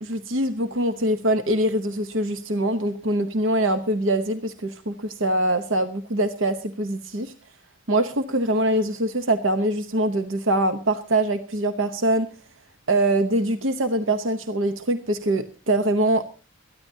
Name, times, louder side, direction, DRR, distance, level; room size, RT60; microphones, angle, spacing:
voice 1, 0.0-7.3 7.9-12.3 12.9-16.2, right 1 dB, 65° right, 9 dB, 0.9 m, -23 dB
22.0 x 14.0 x 2.7 m, 0.35 s
head